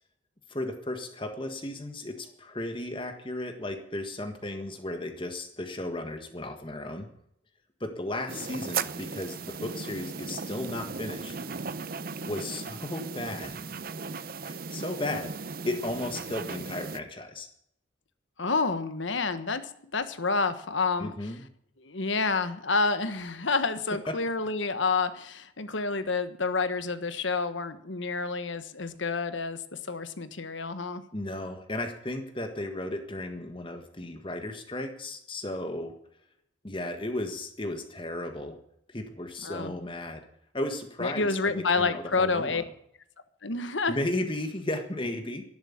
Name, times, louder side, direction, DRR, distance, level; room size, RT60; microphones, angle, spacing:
voice 1, 0.5-7.1 7.8-11.3 12.3-13.6 14.4-17.5 21.0-21.4 24.1-24.2 31.1-35.9 36.6-38.6 38.9-40.2 40.5-42.6 43.9-45.4, left 1 dB, 25° left, 6 dB, 1.6 m, -35 dB
sound 1, 8.3-17.0, right 5 dB, 45° right, 0.7 m, -37 dB
voice 2, 18.4-19.6 19.9-21.3 21.8-29.6 29.9-31.0 39.4-39.7 41.0-42.6 43.4-44.0, left 4 dB, 70° left, 11 dB, 1.4 m, -29 dB
12.0 x 11.0 x 8.8 m, 0.72 s
head